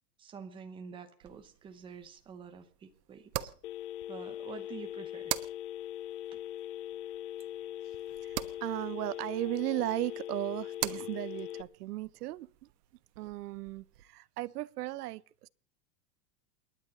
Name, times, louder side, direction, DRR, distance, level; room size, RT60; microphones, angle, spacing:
voice 1, 0.2-3.5 4.1-5.3 6.3-6.4, right 6 dB, 10° right, 0.8 m, -48 dB
sound 1, 1.2-14.0, right 14 dB, 90° right, 1.3 m, -44 dB
Telephone, 3.6-11.6, left 11 dB, 70° left, 1.1 m, -41 dB
voice 2, 8.2-12.7 13.2-15.5, right 17 dB, 75° right, 0.8 m, -36 dB
29.0 x 10.5 x 4.1 m
supercardioid pair, 175°, 47 cm